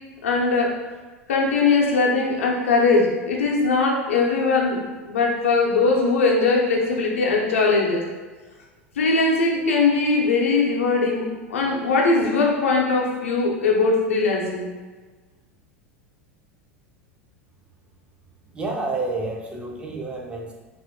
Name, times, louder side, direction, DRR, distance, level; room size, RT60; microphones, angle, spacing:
voice 1, 0.2-0.8 1.3-8.1 9.0-14.7, left 3 dB, 65° left, -1 dB, 0.5 m, -20 dB
voice 2, 18.5-20.5, right 3 dB, 15° right, 0 dB, 0.4 m, -29 dB
2.7 x 2.4 x 2.6 m, 1.3 s
figure-of-eight pair, 80°, 7 cm